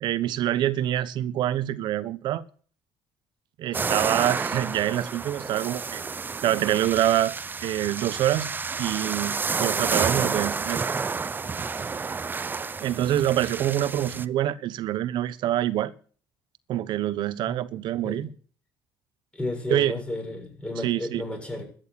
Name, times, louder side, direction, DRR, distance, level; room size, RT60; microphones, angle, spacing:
voice 1, 0.0-2.4 3.6-6.0 6.4-7.3 7.6-8.5 8.8-10.8 12.8-15.9 16.7-18.3 19.7-19.9 20.8-21.2, right 12 dB, 65° right, 1.1 m, -26 dB
sound 1, 3.7-14.2, right 5 dB, 25° right, 0.7 m, -30 dB
voice 2, 19.3-21.6, left 1 dB, 15° left, 7.5 m, -33 dB
13.0 x 9.5 x 8.3 m
cardioid pair, 115°, 8 cm